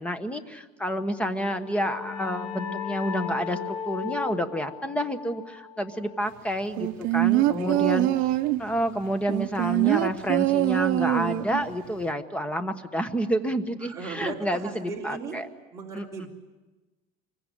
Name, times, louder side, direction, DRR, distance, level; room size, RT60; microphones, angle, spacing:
voice 1, 0.0-8.1 8.6-15.5 15.9-16.3, equal, 5° left, 10 dB, 1.2 m, -29 dB
sound 1, 1.3-6.7, left 7 dB, 70° left, 3.1 m, -36 dB
sound 2, 6.8-8.7 9.3-11.7 12.0-12.1, right 16 dB, 50° right, 0.9 m, -23 dB
voice 2, 7.4-8.0 13.8-15.4 15.7-16.3, right 5 dB, 15° right, -4 dB, 3.6 m, -37 dB
25.0 x 22.5 x 10.0 m, 1.2 s
cardioid pair, 165°, 18 cm